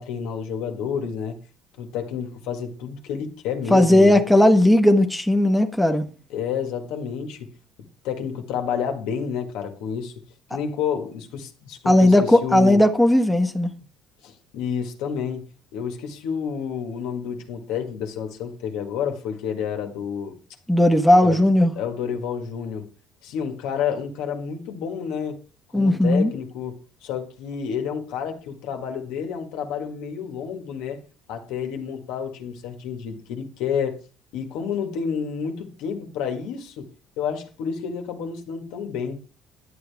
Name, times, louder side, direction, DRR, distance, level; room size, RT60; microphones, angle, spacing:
voice 1, 0.0-1.4 1.8-4.2 6.3-7.5 8.0-10.1 10.5-12.8 14.2-20.4 21.2-21.4 21.8-22.9 23.2-25.4 25.7-31.0 31.3-34.0 34.3-36.9 37.2-39.2, left 7 dB, 80° left, 1.8 m, -30 dB
voice 2, 3.7-6.1 11.8-13.7 20.7-21.7 25.7-26.3, left 1 dB, 5° left, 1.1 m, -16 dB
10.5 x 8.6 x 3.5 m
cardioid pair, 105°, 0 cm